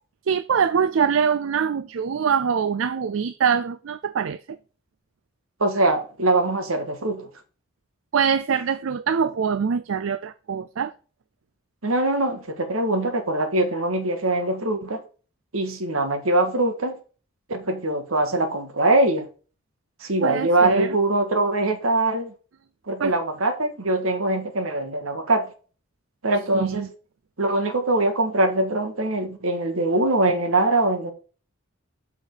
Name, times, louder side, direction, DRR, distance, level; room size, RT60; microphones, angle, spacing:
voice 1, 0.3-4.6 8.1-10.9 20.2-20.9 23.0-23.1 26.5-26.9, right 6 dB, 70° right, 0.4 m, -24 dB
voice 2, 5.6-7.3 11.8-15.0 15.5-17.0 17.5-19.3 20.0-22.3 22.9-25.5 26.2-26.9 27.4-31.1, right 2 dB, 85° right, 1.7 m, -22 dB
5.8 x 5.3 x 6.6 m
head